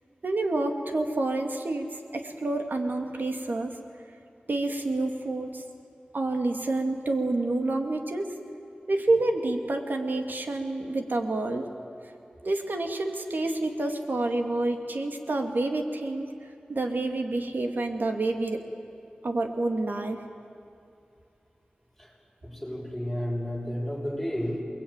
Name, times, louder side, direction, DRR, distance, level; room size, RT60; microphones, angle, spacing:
voice 1, 0.2-3.8 4.5-5.6 6.1-8.3 8.9-11.7 12.4-18.6 19.2-20.2, right 2 dB, 70° right, 4 dB, 2.3 m, -28 dB
voice 2, 22.4-24.6, equal, ahead, -2 dB, 7.4 m, -32 dB
28.5 x 21.0 x 9.0 m, 2.7 s
wide cardioid pair, 60°, 3 cm